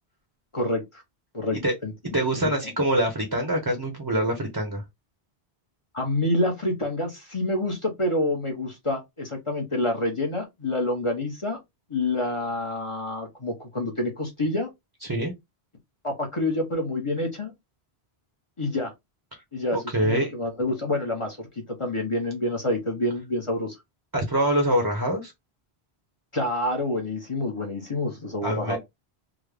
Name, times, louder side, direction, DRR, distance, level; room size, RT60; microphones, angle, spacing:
voice 1, 0.5-1.0 1.3-1.9 2.6-2.7 5.9-11.6 11.9-14.7 16.0-17.5 18.6-18.9 19.5-23.8 26.3-28.8, left 1 dB, 30° left, 0.8 m, -27 dB
voice 2, 2.1-4.8 15.0-15.3 19.9-20.3 24.1-25.3 28.4-28.8, right 1 dB, 20° right, 0.8 m, -24 dB
3.6 x 2.1 x 3.3 m
omnidirectional pair, 1.1 m